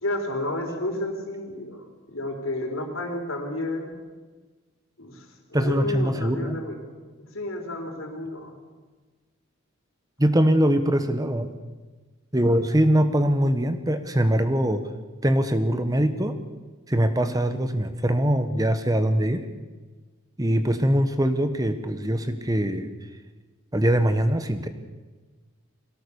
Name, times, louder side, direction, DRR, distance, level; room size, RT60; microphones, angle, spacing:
voice 1, 0.0-3.9 5.0-6.8 7.2-8.5, left 1 dB, 65° left, 3 dB, 4.0 m, -31 dB
voice 2, 5.5-6.6 10.2-11.5 12.3-14.8 15.2-16.4 16.9-19.5 20.4-22.9 23.7-24.7, right 1 dB, 15° right, 10 dB, 1.2 m, -22 dB
22.0 x 17.5 x 7.1 m, 1.3 s
head